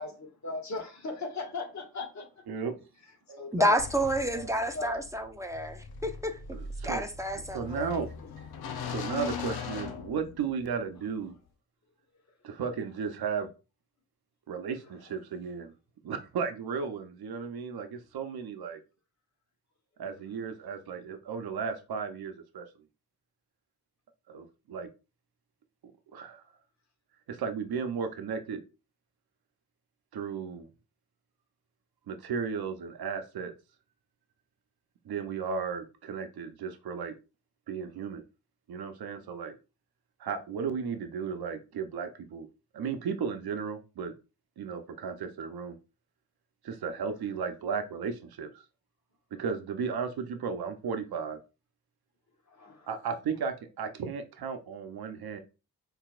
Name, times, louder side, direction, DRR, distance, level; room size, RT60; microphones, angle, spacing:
voice 1, 0.0-2.3 3.4-3.7 4.3-4.4 4.7-5.0 52.5-52.9, left 3 dB, 45° left, 1.5 m, -37 dB
voice 2, 3.5-6.4 6.8-7.9, equal, 10° right, 0.7 m, -29 dB
sound 1, 3.8-10.7, left 6 dB, 75° left, 0.7 m, -40 dB
voice 3, 6.5-7.0 7.5-8.1 8.7-11.4 12.4-13.5 14.5-15.7 16.0-18.8 20.0-22.7 24.3-24.9 26.1-26.4 27.3-28.6 30.1-30.7 32.1-33.5 35.0-37.1 37.7-38.2 38.7-39.6 40.2-42.5 42.7-44.1 44.6-45.8 46.6-48.6 49.3-51.4 52.9-55.4, right 6 dB, 75° right, 0.8 m, -35 dB
4.7 x 3.3 x 2.4 m
cardioid pair, 60°, 38 cm